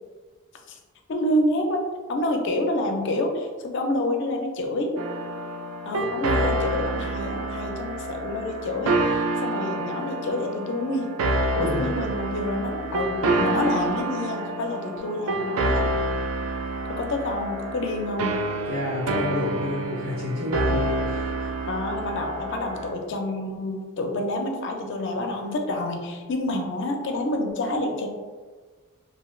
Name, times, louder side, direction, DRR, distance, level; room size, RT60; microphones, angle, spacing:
voice 1, 1.1-5.0 5.9-11.1 11.5-15.8 16.9-18.4 21.7-28.1, left 1 dB, 55° left, 3 dB, 0.4 m, -28 dB
sound 1, 5.0-22.9, right 2 dB, 80° right, 0.3 m, -28 dB
voice 2, 11.6-11.9 18.7-21.5, left 1 dB, 45° right, -12 dB, 1.1 m, -30 dB
3.1 x 2.6 x 2.3 m, 1.4 s
head